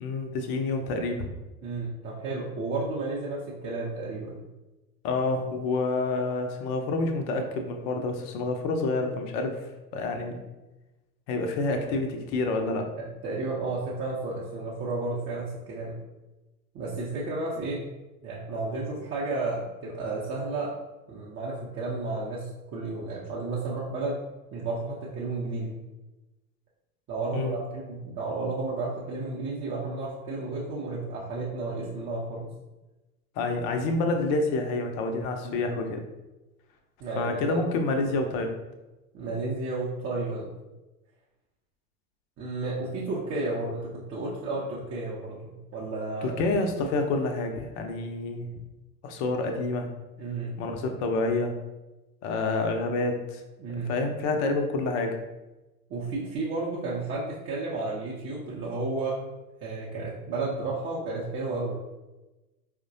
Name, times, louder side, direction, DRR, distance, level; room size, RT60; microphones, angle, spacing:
voice 1, 0.0-1.3 5.0-9.7 9.9-10.4 11.3-12.9 27.3-27.6 33.4-36.0 37.2-38.5 46.2-48.5 49.0-49.9 50.6-51.6 52.2-53.4 53.9-55.2, left 3 dB, 40° left, 4 dB, 0.6 m, -28 dB
voice 2, 1.6-4.4 13.0-16.0 16.7-17.9 18.2-20.7 21.1-24.2 24.5-25.8 27.1-32.5 35.4-35.6 37.0-37.7 39.1-40.5 42.4-46.4 50.2-50.5 53.6-53.9 55.9-59.2 59.6-61.8, right 3 dB, 30° right, -6 dB, 0.7 m, -32 dB
4.5 x 2.1 x 2.6 m, 1.1 s
figure-of-eight pair, 85°, 45 cm